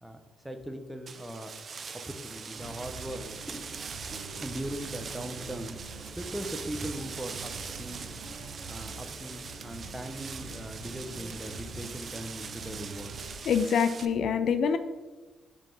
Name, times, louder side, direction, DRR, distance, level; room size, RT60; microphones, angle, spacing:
voice 1, 0.0-1.5 1.9-3.7 4.1-5.8 6.2-8.3 8.7-13.1, right 1 dB, 10° right, 6 dB, 0.7 m, -39 dB
sound 1, 1.1-14.1, right 5 dB, 45° right, 0.4 m, -42 dB
sound 2, 2.6-13.4, right 3 dB, 75° right, 1.0 m, -45 dB
voice 2, 13.4-14.8, left 6 dB, 65° left, 10 dB, 0.4 m, -25 dB
5.4 x 3.5 x 5.4 m, 1.2 s
cardioid pair, 90°, 0 cm